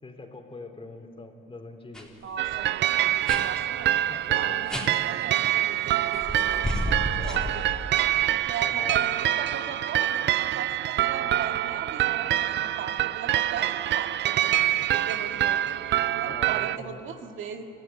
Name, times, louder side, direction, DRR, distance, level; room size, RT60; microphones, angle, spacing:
voice 1, 0.0-2.1 3.9-4.6 7.2-7.5 8.6-9.0 14.1-14.6 16.2-17.0, left 3 dB, 25° left, 4 dB, 3.4 m, -43 dB
sound 1, 1.9-2.0 2.3-2.6 3.3-3.4 4.7-4.9 6.1-8.1, equal, 5° left, 4.0 m, -31 dB
voice 2, 2.2-7.6 8.3-14.5 14.9-17.6, right 7 dB, 80° right, 4 dB, 2.0 m, -39 dB
sound 2, 2.4-16.8, right 13 dB, 65° right, 0.5 m, -26 dB
24.5 x 15.5 x 10.0 m, 2.8 s
cardioid pair, 90°, 20 cm